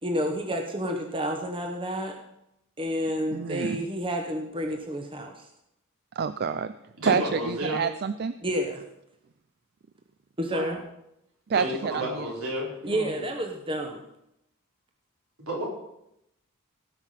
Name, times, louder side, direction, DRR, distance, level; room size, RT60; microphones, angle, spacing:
voice 1, 0.0-2.2 2.8-5.5 8.4-8.8 10.4-10.8 12.8-14.0, equal, 25° right, 2 dB, 1.1 m, -30 dB
voice 2, 3.3-3.8 6.2-6.7 7.1-8.3 11.5-12.3, right 6 dB, 45° right, 12 dB, 0.4 m, -28 dB
voice 3, 7.0-7.8 10.5-10.8 11.5-13.1 15.5-15.6, equal, 75° right, -3 dB, 4.2 m, -31 dB
17.5 x 5.9 x 5.7 m, 0.82 s
head